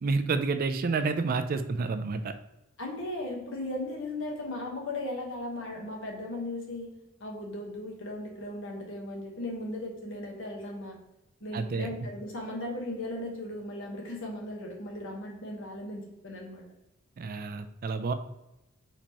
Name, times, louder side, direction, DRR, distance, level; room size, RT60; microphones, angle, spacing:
voice 1, 0.0-2.3 11.5-11.9 17.2-18.1, right 4 dB, 40° right, 9 dB, 0.3 m, -29 dB
voice 2, 2.8-6.9 7.2-11.0 11.4-16.6, left 1 dB, 60° left, 0 dB, 1.2 m, -37 dB
4.3 x 4.2 x 2.9 m, 0.93 s
head